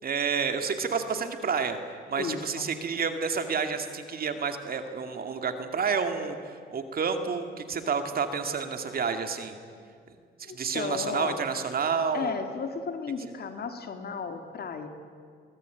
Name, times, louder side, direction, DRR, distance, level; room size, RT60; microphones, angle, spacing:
voice 1, 0.0-9.6 10.4-12.4, right 5 dB, 50° right, 7 dB, 2.4 m, -30 dB
voice 2, 2.2-2.7 10.4-11.4 12.1-14.9, left 5 dB, 50° left, 7 dB, 2.4 m, -34 dB
23.0 x 19.0 x 9.3 m, 2.2 s
cardioid pair, 90°, 20 cm